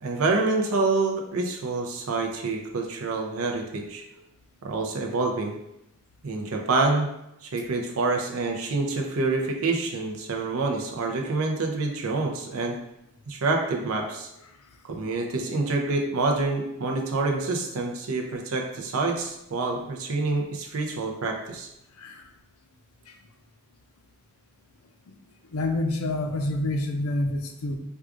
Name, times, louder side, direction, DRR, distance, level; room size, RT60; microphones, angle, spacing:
voice 1, 0.0-4.0 4.6-5.5 6.2-7.1 7.4-12.8 13.3-14.3 14.8-21.7, right 3 dB, 75° right, 2 dB, 0.5 m, -27 dB
voice 2, 25.5-27.8, left 2 dB, 80° left, 4 dB, 0.5 m, -27 dB
4.6 x 2.4 x 2.5 m, 0.84 s
head